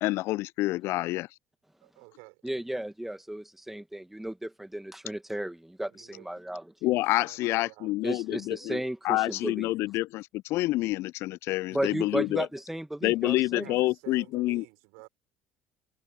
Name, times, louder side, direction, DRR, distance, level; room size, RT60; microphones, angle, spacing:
voice 1, 0.0-1.3 6.8-8.8 9.0-12.5 13.0-14.6, left 18 dB, 55° left, 0.7 m, -28 dB
voice 2, 1.8-2.4 5.9-6.3 7.2-8.0 13.1-15.1, right 35 dB, 65° right, 6.8 m, -51 dB
voice 3, 2.4-6.7 8.0-9.7 11.7-13.7, right 1 dB, 5° right, 1.9 m, -34 dB
figure-of-eight pair, 55°, 5 cm